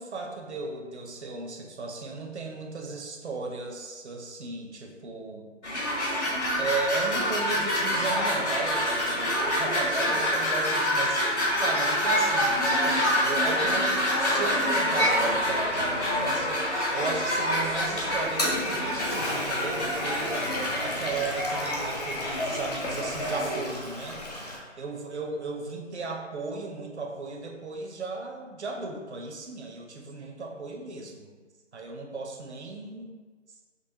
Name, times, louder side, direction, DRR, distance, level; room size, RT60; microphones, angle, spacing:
voice 1, 0.0-5.4 6.6-20.4 20.8-24.2 24.8-31.3 31.7-33.2, right 3 dB, 60° right, 1 dB, 0.7 m, -35 dB
sound 1, 5.6-23.6, equal, 60° left, 1.4 m, -26 dB
Toilet flush, 18.2-24.6, left 1 dB, 35° left, 0.6 m, -35 dB
5.3 x 2.9 x 2.9 m, 1.4 s
figure-of-eight pair, 160°, 38 cm